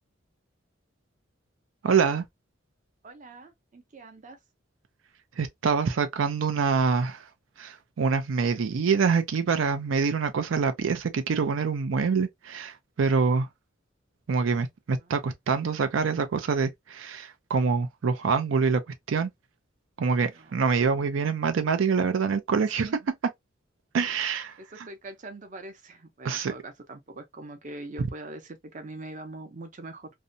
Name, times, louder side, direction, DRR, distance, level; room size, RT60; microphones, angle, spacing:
voice 1, 1.8-2.2 5.4-7.2 7.6-13.5 14.3-18.8 19.1-19.3 20.0-22.9 23.9-24.9 26.2-26.5 28.0-28.1, right 5 dB, 90° right, 0.4 m, -25 dB
voice 2, 3.0-4.4 14.9-15.1 20.3-21.2 22.5-23.0 24.1-24.2 24.6-30.1, right 2 dB, 40° right, 0.6 m, -43 dB
2.7 x 2.1 x 2.6 m
head